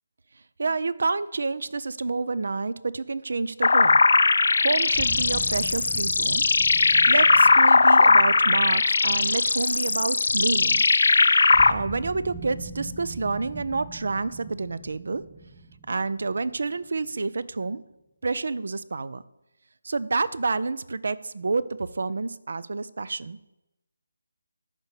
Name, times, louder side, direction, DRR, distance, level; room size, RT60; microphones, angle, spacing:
voice 1, 0.6-4.0 4.6-6.4 7.1-10.8 11.7-15.2 15.9-17.8 18.2-19.2 19.8-23.4, right 3 dB, 60° right, 18 dB, 0.5 m, -28 dB
sound 1, 3.6-11.7, left 3 dB, 65° left, 0.5 m, -19 dB
sound 2, 4.9-9.9 11.5-17.2, right 2 dB, 5° right, 0.7 m, -41 dB
13.0 x 5.3 x 4.9 m, 0.92 s
figure-of-eight pair, 155°, 0 cm